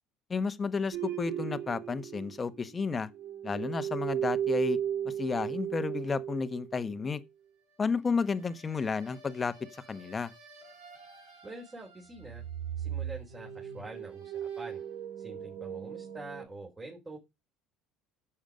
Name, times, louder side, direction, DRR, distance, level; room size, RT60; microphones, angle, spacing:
voice 1, 0.3-3.1 3.4-4.8 5.0-7.2 7.8-9.5 9.9-10.3, left 5 dB, 25° left, 1.3 m, -32 dB
sound 1, 0.9-2.9 3.1-7.0 8.6-11.8 12.1-16.5, right 9 dB, 80° right, 5.2 m, -37 dB
voice 2, 11.4-12.4 12.8-14.8 15.2-17.2, right 2 dB, 25° right, 4.2 m, -45 dB
10.5 x 7.3 x 5.1 m
supercardioid pair, 90°, 0 cm